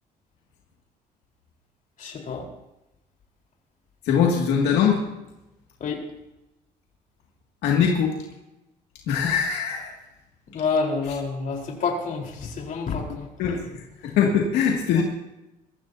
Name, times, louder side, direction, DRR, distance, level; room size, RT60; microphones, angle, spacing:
voice 1, 2.0-2.5 5.8-6.0 10.5-13.3 15.0-15.1, left 4 dB, 50° left, 0 dB, 4.2 m, -28 dB
voice 2, 4.0-5.0 7.6-8.1 9.1-9.9 13.4-15.0, left 7 dB, 85° left, -1 dB, 2.3 m, -22 dB
23.0 x 14.5 x 2.8 m, 0.94 s
cardioid pair, 110°, 17 cm